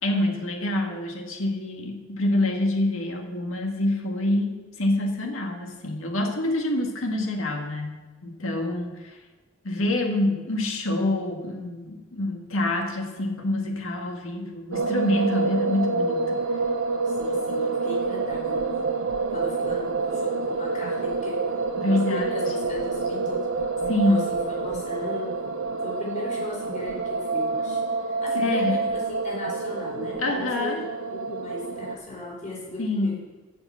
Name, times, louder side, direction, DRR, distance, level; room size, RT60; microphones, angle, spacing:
voice 1, 0.0-9.2 9.6-16.4 21.8-22.4 23.9-24.3 28.3-28.7 30.2-30.8 32.8-33.1, left 1 dB, 80° left, 2 dB, 2.0 m, -26 dB
sound 1, 14.7-32.0, right 4 dB, 90° right, 0.8 m, -27 dB
voice 2, 17.0-18.8 19.3-21.4 21.8-23.4 24.0-25.4 25.8-27.8 28.0-33.1, left 2 dB, 35° left, -4 dB, 4.6 m, -36 dB
10.0 x 7.0 x 7.5 m, 1.2 s
head